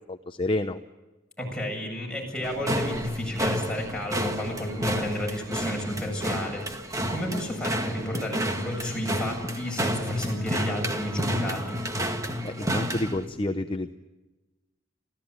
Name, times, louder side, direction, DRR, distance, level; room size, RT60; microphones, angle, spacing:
voice 1, 0.1-0.8 12.4-13.9, left 2 dB, 25° left, 7 dB, 0.8 m, -29 dB
voice 2, 1.4-6.6 7.1-11.8, left 1 dB, 5° left, -1 dB, 7.6 m, -31 dB
sound 1, 2.4-13.2, equal, 15° right, 1.8 m, -30 dB
26.0 x 16.0 x 9.6 m, 1.1 s
head